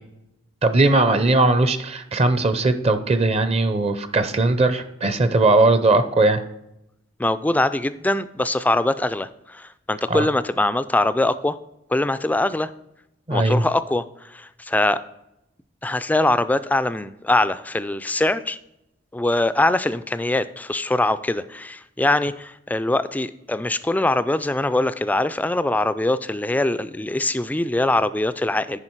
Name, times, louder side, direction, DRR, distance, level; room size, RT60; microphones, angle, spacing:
voice 1, 0.6-6.4 10.1-10.3 13.3-13.6, right 2 dB, 30° right, 11 dB, 0.6 m, -19 dB
voice 2, 7.2-11.6 11.9-12.7 13.3-15.0 15.8-18.6 19.1-28.8, left 2 dB, 10° left, 13 dB, 0.3 m, -22 dB
9.7 x 5.2 x 4.5 m, 0.85 s
head